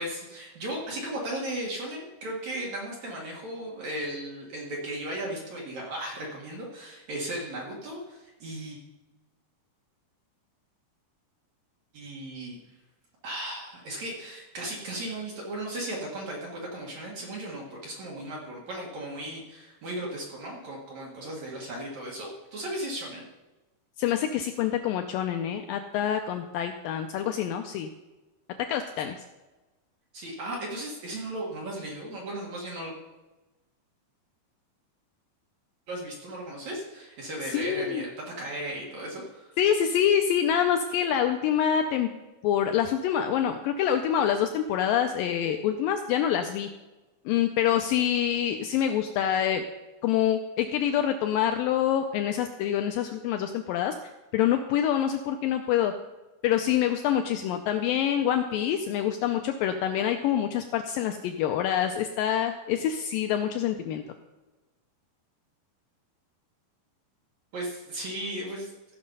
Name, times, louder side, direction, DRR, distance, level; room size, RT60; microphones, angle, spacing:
voice 1, 0.0-8.8 11.9-12.6 13.2-23.2 30.1-32.9 35.9-39.6 67.5-68.7, right 1 dB, 55° right, -2 dB, 2.7 m, -36 dB
voice 2, 24.0-27.9 28.6-29.2 37.5-38.0 39.6-42.1 42.4-46.7 47.3-49.7 50.0-54.0 54.3-55.9 56.4-64.0, left 9 dB, 80° left, 6 dB, 2.1 m, -26 dB
15.0 x 6.2 x 5.4 m, 1.1 s
omnidirectional pair, 4.3 m